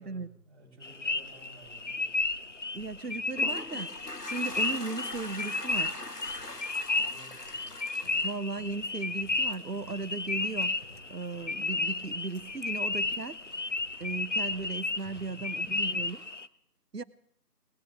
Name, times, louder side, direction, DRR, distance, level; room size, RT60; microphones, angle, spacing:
voice 1, 0.0-2.1 3.0-3.5 3.8-3.9 7.0-7.7 15.2-16.0, right 1 dB, 10° right, -10 dB, 7.2 m, -54 dB
sound 1, 0.8-16.5, left 3 dB, 50° left, 0.6 m, -33 dB
sound 2, 1.0-16.2, left 1 dB, 15° left, 6.4 m, -55 dB
voice 2, 2.7-3.9 4.2-6.0 8.2-10.7 11.1-13.4 14.0-16.2 16.9-17.0, right 4 dB, 75° right, 15 dB, 1.1 m, -36 dB
Toilet flush, 3.0-9.4, left 2 dB, 75° left, 2.0 m, -42 dB
21.0 x 19.5 x 3.5 m, 0.69 s
figure-of-eight pair, 165°, 48 cm